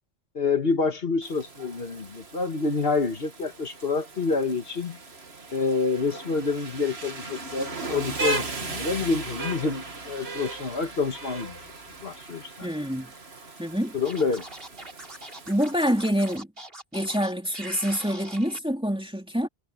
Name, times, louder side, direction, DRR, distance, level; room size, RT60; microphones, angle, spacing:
voice 1, 0.4-5.0 5.5-11.6 12.0-12.7 13.9-14.4, left 4 dB, 70° left, 1.7 m, -27 dB
Rain, 1.2-16.4, right 3 dB, 85° right, 2.3 m, -37 dB
voice 2, 12.6-13.1 13.6-13.9 15.5-16.5 16.9-19.5, equal, 5° right, 2.8 m, -26 dB
Scratching (performance technique), 14.0-18.6, right 1 dB, 65° right, 6.0 m, -42 dB
omnidirectional pair, 1.0 m